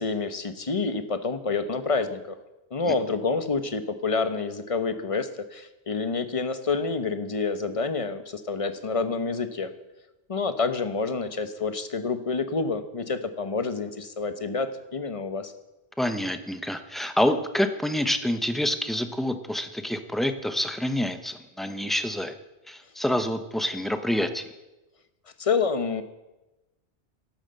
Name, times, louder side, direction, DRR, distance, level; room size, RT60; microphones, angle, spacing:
voice 1, 0.0-2.4 2.7-9.7 10.3-15.5 25.4-26.0, left 4 dB, 30° left, 10 dB, 1.1 m, -28 dB
voice 2, 16.0-22.3 22.7-24.5, left 1 dB, ahead, 9 dB, 0.9 m, -27 dB
12.5 x 12.0 x 7.7 m, 1.0 s
omnidirectional pair, 1.1 m